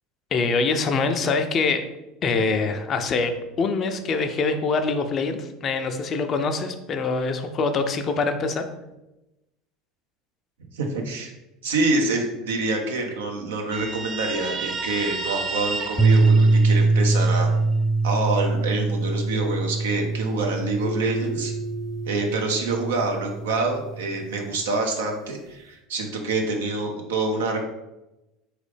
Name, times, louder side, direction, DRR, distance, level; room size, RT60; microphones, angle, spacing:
voice 1, 0.3-1.8 2.2-3.3 3.6-8.7, left 4 dB, 40° left, 7 dB, 0.4 m, -24 dB
voice 2, 10.7-11.3 11.6-17.5 18.0-21.5 22.1-27.6, right 3 dB, 75° right, 2 dB, 0.7 m, -26 dB
Guitar, 13.7-17.3, right 3 dB, 35° right, 0.4 m, -32 dB
sound 1, 16.0-24.4, right 3 dB, ahead, 0.7 m, -23 dB
Keyboard (musical), 20.8-23.6, right 2 dB, 75° left, 0.7 m, -35 dB
3.8 x 3.1 x 3.2 m, 0.96 s
hypercardioid pair, 75°, 0 cm